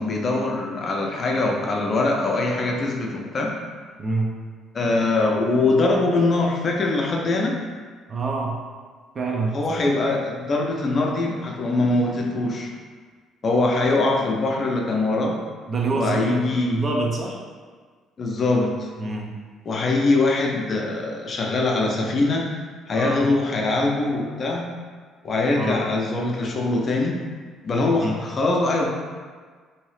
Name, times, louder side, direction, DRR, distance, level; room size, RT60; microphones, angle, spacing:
voice 1, 0.0-3.6 4.7-7.6 9.5-12.7 13.4-15.4 15.9-16.8 18.2-18.9 19.7-22.5 22.9-24.7 25.2-27.2 27.6-28.9, left 2 dB, 45° left, 0 dB, 0.5 m, -22 dB
voice 2, 4.0-4.3 8.1-8.6 9.1-9.6 15.7-17.4 19.0-19.3 22.9-23.2 25.6-25.8 28.0-28.2, right 3 dB, 40° right, -1 dB, 0.6 m, -26 dB
2.8 x 2.7 x 3.1 m, 1.6 s
figure-of-eight pair, 50°, 0 cm